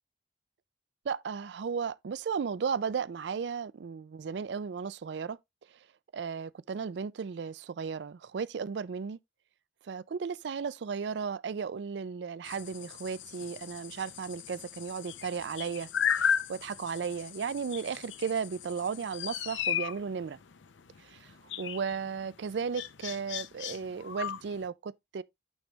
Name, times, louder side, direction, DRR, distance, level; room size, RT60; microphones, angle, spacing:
voice 1, 1.0-5.4 6.1-9.2 9.8-20.4 21.0-25.2, right 6 dB, 65° right, 0.4 m, -35 dB
sound 1, 12.4-24.7, left 8 dB, 80° left, 0.6 m, -36 dB
8.9 x 3.4 x 3.8 m
head